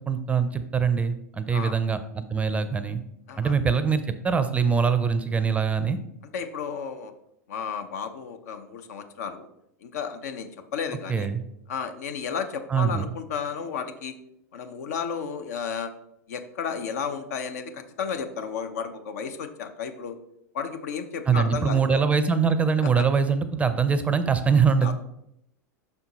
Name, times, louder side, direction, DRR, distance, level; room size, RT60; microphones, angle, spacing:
voice 1, 0.1-3.0 3.4-6.0 11.1-11.4 12.7-13.1 21.3-24.9, right 6 dB, 15° right, 11 dB, 0.5 m, -23 dB
voice 2, 6.3-7.1 7.5-9.5 9.8-11.3 11.7-14.1 14.5-15.9 16.3-20.2 20.5-22.0 23.0-23.1 24.8-24.9, left 6 dB, 70° left, 8 dB, 0.7 m, -33 dB
5.5 x 4.4 x 4.0 m, 0.78 s
hypercardioid pair, 95°, 9 cm